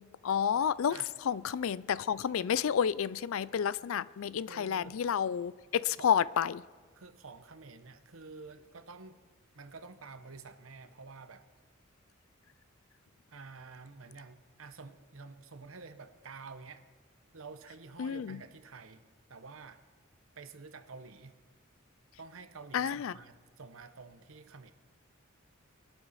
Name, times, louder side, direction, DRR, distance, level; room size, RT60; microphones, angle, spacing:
voice 1, 0.0-1.0 1.2-6.6 18.0-18.4 22.7-23.2, left 8 dB, 75° left, 0.4 m, -30 dB
voice 2, 4.5-5.0 6.0-6.1 6.9-9.2 9.5-11.4 13.3-16.8 17.3-19.0 19.3-19.8 20.4-21.4 22.2-24.7, right 4 dB, 75° right, 0.9 m, -49 dB
22.0 x 12.0 x 4.2 m
head